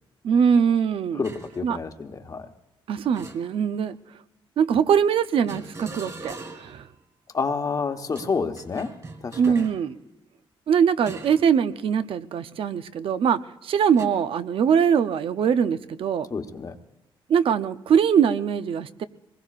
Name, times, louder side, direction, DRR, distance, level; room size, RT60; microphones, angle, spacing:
voice 1, 0.2-1.2 1.6-1.8 2.9-4.0 4.6-6.8 9.4-10.0 10.7-16.3 17.3-19.0, right 7 dB, 70° right, 12 dB, 0.7 m, -22 dB
voice 2, 1.1-2.5 7.3-8.9 9.2-9.6 16.3-16.8, left 5 dB, 40° left, 5 dB, 1.1 m, -29 dB
sound 1, 1.2-1.6 3.1-3.9 5.5-6.8 8.1-9.8 11.1-11.5 11.9-12.1 14.0-14.1, right 2 dB, 35° right, 2.9 m, -41 dB
23.0 x 20.5 x 2.5 m, 0.95 s
cardioid pair, 110°, 10 cm